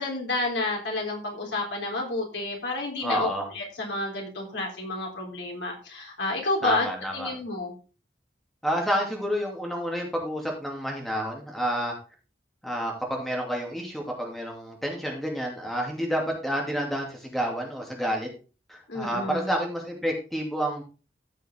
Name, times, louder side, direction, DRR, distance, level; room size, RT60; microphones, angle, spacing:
voice 1, 0.0-6.9 7.1-7.7 18.9-19.5, left 2 dB, 90° left, -1 dB, 3.8 m, -30 dB
voice 2, 3.0-3.5 6.6-7.3 8.6-11.9 12.6-18.3 18.7-20.8, equal, ahead, -1 dB, 2.6 m, -29 dB
15.0 x 5.8 x 3.7 m, 0.34 s
head